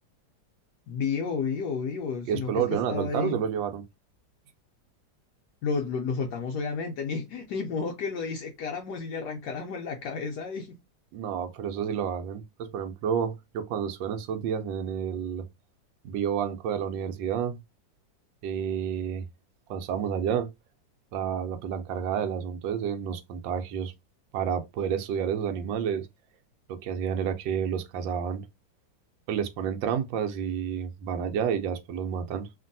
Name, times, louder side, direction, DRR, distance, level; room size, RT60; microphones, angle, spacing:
voice 1, 0.9-3.4 5.6-10.8, left 5 dB, 75° left, 1.1 m, -31 dB
voice 2, 2.3-3.8 11.1-15.4 16.0-17.6 18.4-19.3 19.7-20.5 21.1-23.9 24.3-26.1 26.7-28.4 29.3-32.5, right 8 dB, 90° right, 1.3 m, -30 dB
2.9 x 2.6 x 2.5 m
omnidirectional pair, 2.0 m